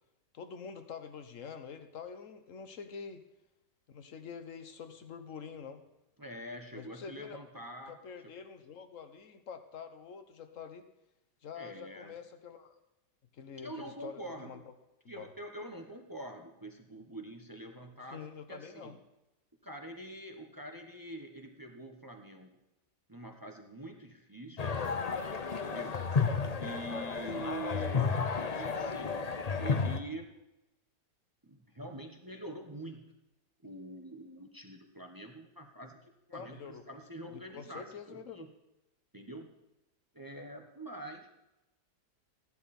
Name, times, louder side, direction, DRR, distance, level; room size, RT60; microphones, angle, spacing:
voice 1, 0.3-3.2 3.9-5.8 6.7-7.4 7.9-10.9 11.4-12.7 13.3-14.6 15.0-15.3 18.1-19.0 27.3-27.5 36.3-36.8 37.3-38.5, left 6 dB, 50° left, 8 dB, 1.3 m, -46 dB
voice 2, 6.2-8.0 8.2-8.3 11.5-12.2 13.6-14.6 15.1-18.9 19.6-22.6 23.1-24.6 25.6-26.0 26.6-29.3 29.6-30.3 31.4-33.1 33.6-38.5 39.1-39.5 40.1-41.3, right 1 dB, 15° right, 4 dB, 0.9 m, -45 dB
sound 1, 24.6-30.0, left 5 dB, 70° left, 0.3 m, -32 dB
16.0 x 11.0 x 4.3 m, 0.94 s
omnidirectional pair, 1.8 m